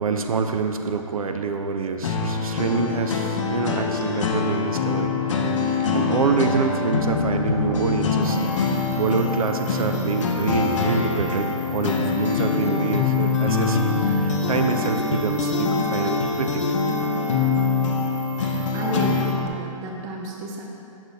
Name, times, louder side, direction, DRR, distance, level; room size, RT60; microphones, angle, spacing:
voice 1, 0.0-5.1 5.6-8.4 8.9-16.6, right 4 dB, 85° right, 6 dB, 0.5 m, -26 dB
sound 1, 2.0-19.5, left 4 dB, 60° left, 0.7 m, -24 dB
sound 2, 8.2-19.3, right 6 dB, 45° right, 1.0 m, -46 dB
voice 2, 18.7-20.6, right 2 dB, 15° right, 0 dB, 0.5 m, -31 dB
6.2 x 5.9 x 2.7 m, 2.6 s
hypercardioid pair, 145°, 18 cm